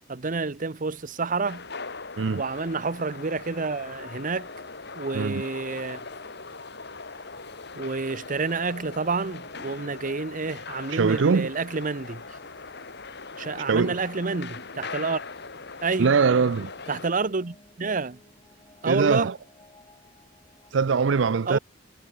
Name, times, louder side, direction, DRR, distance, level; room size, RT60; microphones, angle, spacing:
voice 1, 0.1-1.6 2.3-4.5 4.9-6.0 7.7-12.2 13.4-15.2 15.8-16.2 16.9-18.2 18.8-19.3 21.5-21.6, right 4 dB, 45° right, 0.9 m, -29 dB
sound 1, 1.4-17.1, left 4 dB, 60° left, 4.0 m, -40 dB
sound 2, 2.8-20.8, left 2 dB, 25° left, 7.9 m, -58 dB
voice 2, 10.9-11.5 13.7-14.0 16.0-16.7 18.9-19.4 20.7-21.6, right 5 dB, 75° right, 0.5 m, -22 dB
head